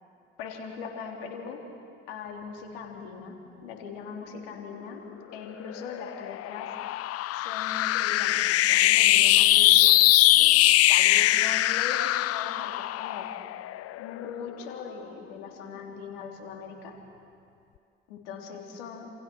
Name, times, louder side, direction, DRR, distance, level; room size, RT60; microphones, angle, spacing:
voice 1, 0.4-1.6 2.1-3.3 3.6-5.0 5.3-6.7 7.3-10.0 10.3-10.6 10.9-13.3 14.0-16.9 18.1-19.1, left 6 dB, 75° left, 1 dB, 3.4 m, -40 dB
sound 1, 5.7-14.3, left 15 dB, 50° left, 0.6 m, -22 dB
29.0 x 27.5 x 6.2 m, 2.4 s
hypercardioid pair, 50°, 30 cm